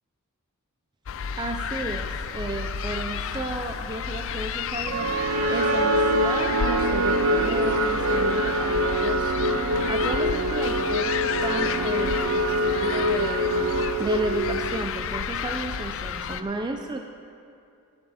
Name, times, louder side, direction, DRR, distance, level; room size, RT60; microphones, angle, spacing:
sound 1, 1.1-16.4, left 7 dB, 60° left, 0.5 m, -32 dB
voice 1, 1.3-5.2 5.5-9.3 9.9-13.5 14.0-17.0, right 2 dB, 20° right, 4 dB, 0.4 m, -33 dB
sound 2, 4.9-15.1, right 1 dB, 75° right, 0.7 m, -24 dB
15.5 x 10.5 x 4.2 m, 2.5 s
head